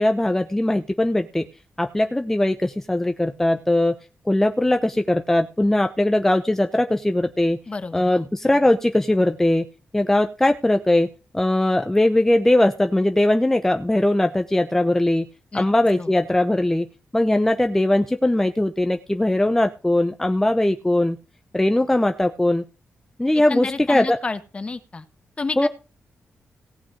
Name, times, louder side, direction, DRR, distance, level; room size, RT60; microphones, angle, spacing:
voice 1, 0.0-1.5 1.8-3.9 4.3-7.6 7.9-9.7 9.9-11.1 11.3-15.3 15.5-16.9 17.1-21.2 21.5-22.6 23.2-24.2 25.6-25.7, left 1 dB, 10° left, 6 dB, 0.8 m, -20 dB
voice 2, 7.7-8.3 15.5-15.7 16.0-16.1 23.5-25.0 25.4-25.7, left 3 dB, 30° left, 11 dB, 1.4 m, -30 dB
18.0 x 6.0 x 5.2 m, 0.33 s
wide cardioid pair, 130°, 4 cm